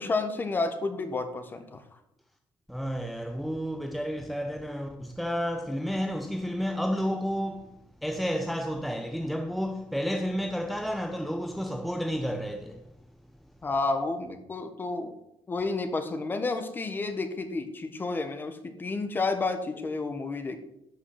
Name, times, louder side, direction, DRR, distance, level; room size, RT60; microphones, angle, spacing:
voice 1, 0.0-1.8 13.6-15.2 15.5-20.6, left 3 dB, 20° left, 1.3 m, -30 dB
voice 2, 2.7-7.7 8.0-12.8, equal, ahead, 0.8 m, -31 dB
11.5 x 6.1 x 8.1 m
cardioid pair, 165°, 9 cm